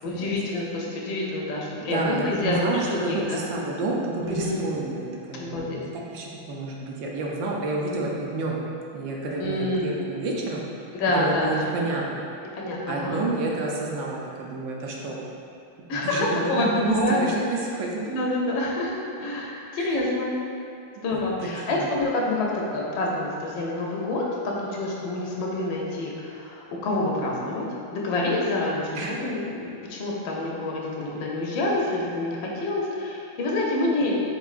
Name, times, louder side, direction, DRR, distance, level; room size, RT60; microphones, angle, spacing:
voice 1, 0.0-3.4 4.2-4.7 5.4-5.8 9.4-9.9 10.9-11.5 12.5-13.3 15.9-17.4 18.0-20.3 21.0-27.6 27.9-34.2, left 2 dB, 80° left, -3 dB, 1.5 m, -27 dB
voice 2, 1.8-5.8 6.1-8.6 8.9-10.6 11.1-12.2 12.9-15.2 15.9-17.0 17.2-17.9 19.8-20.0 21.1-21.9 28.9-29.1, right 3 dB, 75° right, -2 dB, 1.3 m, -30 dB
6.0 x 3.7 x 2.4 m, 2.6 s
omnidirectional pair, 2.1 m